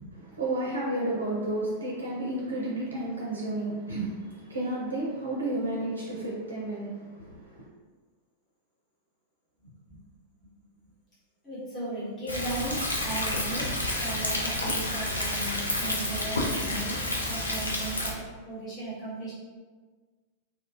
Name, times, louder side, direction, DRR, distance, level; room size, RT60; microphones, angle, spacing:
voice 1, 0.3-7.7, right 1 dB, 75° right, -4 dB, 0.4 m, -32 dB
voice 2, 9.6-10.0 11.4-19.3, right 2 dB, 25° left, -11 dB, 1.1 m, -37 dB
Thunder, 12.3-18.1, left 1 dB, 80° left, 0.4 m, -30 dB
2.6 x 2.4 x 2.4 m, 1.4 s
figure-of-eight pair, 90°, 0 cm